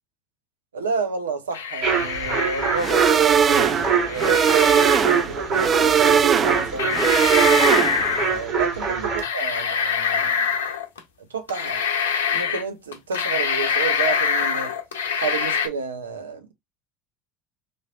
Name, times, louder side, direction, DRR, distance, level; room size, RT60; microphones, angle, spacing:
voice 1, 0.7-7.4 8.2-10.7 11.3-12.1 12.3-14.7 15.2-16.5, right 5 dB, 80° right, 0.7 m, -31 dB
sound 1, 1.5-3.2 4.1-5.0 6.2-6.3 6.8-8.4 9.2-11.0 11.5-12.6 12.9-15.7, left 6 dB, 75° left, 0.7 m, -25 dB
sound 2, 1.8-9.2, right 6 dB, 55° right, 1.9 m, -24 dB
sound 3, 2.8-8.2, right 7 dB, 35° right, 0.4 m, -19 dB
4.0 x 3.2 x 2.3 m
figure-of-eight pair, 65°, 0 cm